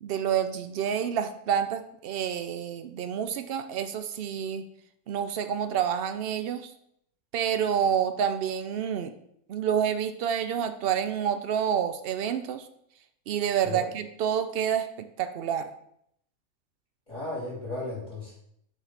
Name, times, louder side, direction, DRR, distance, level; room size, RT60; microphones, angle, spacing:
voice 1, 0.0-4.6 5.1-6.7 7.3-9.1 9.5-12.6 13.3-15.7, right 8 dB, 70° right, 9 dB, 0.5 m, -28 dB
voice 2, 17.1-18.3, left 2 dB, 30° left, -8 dB, 3.5 m, -35 dB
7.3 x 3.4 x 5.7 m, 0.72 s
omnidirectional pair, 1.6 m